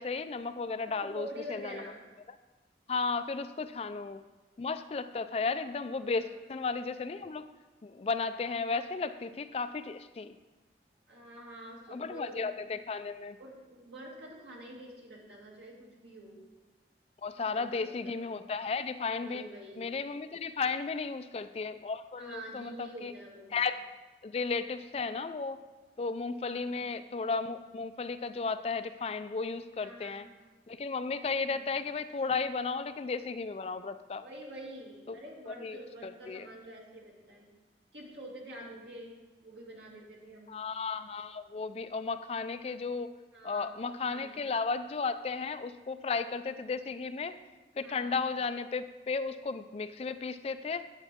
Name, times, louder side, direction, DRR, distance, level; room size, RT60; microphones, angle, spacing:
voice 1, 0.0-1.9 2.9-4.2 4.6-7.5 7.8-10.3 11.9-13.4 17.2-19.4 19.8-23.1 23.5-23.8 24.2-25.6 26.0-30.3 30.7-34.2 35.1-35.2 35.5-35.8 36.0-36.5 40.5-43.1 43.4-47.4 47.8-50.9, left 4 dB, 35° left, 11 dB, 0.3 m, -34 dB
voice 2, 1.0-2.0 6.0-6.4 11.1-12.6 13.4-16.4 17.4-18.4 19.2-19.8 22.2-23.5 26.4-26.9 29.8-30.2 31.5-31.7 34.2-37.5 37.9-39.1 39.4-40.6 43.3-44.4 47.8-48.2, equal, 85° right, -3 dB, 2.4 m, -47 dB
11.5 x 8.3 x 3.6 m, 1.2 s
head